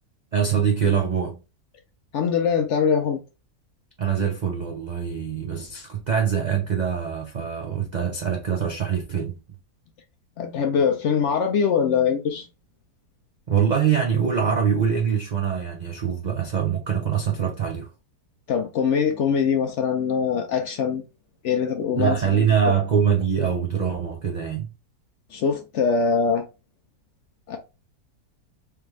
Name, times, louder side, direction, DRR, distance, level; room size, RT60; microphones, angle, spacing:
voice 1, 0.3-1.4 4.0-9.4 13.5-17.9 21.9-24.7, right 7 dB, 90° right, 0.3 m, -23 dB
voice 2, 2.1-3.2 10.4-12.5 18.5-21.0 21.4-22.5 25.3-26.4 27.5-27.6, left 6 dB, 70° left, 0.7 m, -22 dB
3.4 x 3.3 x 3.1 m
omnidirectional pair, 1.6 m